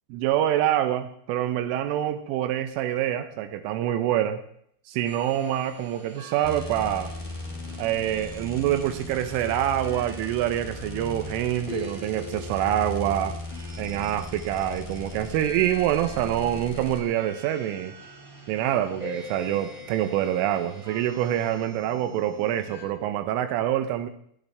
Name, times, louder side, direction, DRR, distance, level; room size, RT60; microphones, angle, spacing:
voice 1, 0.1-4.4 4.9-7.1 7.8-13.4 13.8-17.9 18.5-24.1, right 11 dB, 85° right, 9 dB, 3.3 m, -26 dB
sound 1, 5.0-22.8, left 2 dB, 30° right, 4.1 m, -44 dB
sound 2, 6.4-17.0, left 2 dB, 40° left, 0.4 m, -38 dB
19.5 x 12.5 x 3.5 m, 0.67 s
omnidirectional pair, 5.5 m